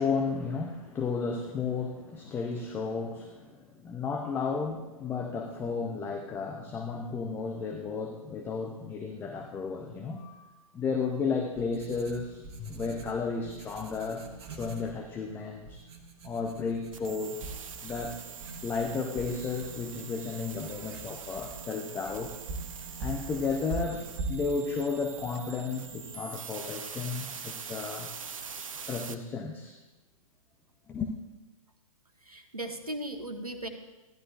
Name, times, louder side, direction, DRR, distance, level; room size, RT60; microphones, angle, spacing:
voice 1, 0.0-14.2 14.5-15.8 16.2-17.5 17.8-18.2 18.6-22.4 23.0-28.1 28.9-29.8 30.9-31.1, left 5 dB, 10° left, 3 dB, 0.6 m, -33 dB
Writing, 11.2-26.0, right 3 dB, 45° right, 1.6 m, -43 dB
sound 1, 16.9-29.1, right 6 dB, 65° right, 0.8 m, -43 dB
voice 2, 32.2-33.7, right 1 dB, 85° right, 5 dB, 1.3 m, -37 dB
14.5 x 11.0 x 2.5 m, 1.1 s
figure-of-eight pair, 115°, 19 cm